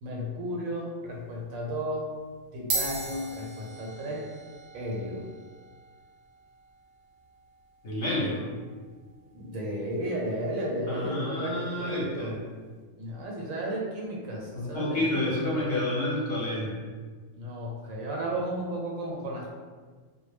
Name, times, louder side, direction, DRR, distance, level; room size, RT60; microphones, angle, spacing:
voice 1, 0.0-2.1 2.5-4.2 4.7-5.2 9.3-12.4 13.0-15.6 17.4-19.5, equal, 90° right, -2 dB, 1.1 m, -33 dB
sound 1, 1.1-1.4 2.2-2.3 2.6-11.2, right 3 dB, 65° right, 0.6 m, -40 dB
voice 2, 7.8-8.4 10.9-12.4 14.5-16.7, left 1 dB, 55° left, -6 dB, 0.7 m, -29 dB
2.2 x 2.0 x 3.2 m, 1.5 s
omnidirectional pair, 1.4 m